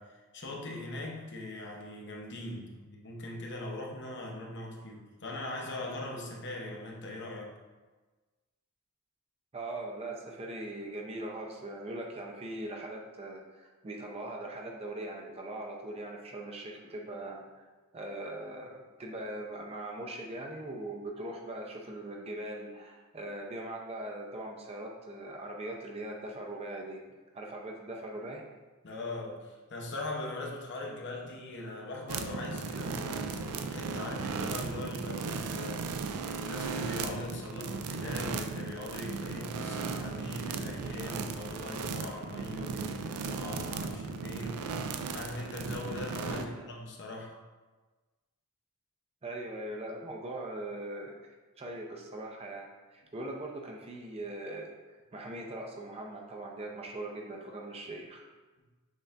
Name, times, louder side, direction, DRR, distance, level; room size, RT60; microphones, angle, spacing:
voice 1, 0.0-7.5 28.8-47.3, left 2 dB, 50° left, -1 dB, 0.7 m, -41 dB
voice 2, 9.5-17.6 17.9-27.0 27.3-28.4 46.4-46.6 49.2-51.2 51.6-54.7 55.1-58.2, right 1 dB, 25° right, 0 dB, 0.5 m, -40 dB
sound 1, 32.1-46.4, right 5 dB, 80° right, 0.4 m, -36 dB
6.5 x 2.5 x 3.3 m, 1.3 s
head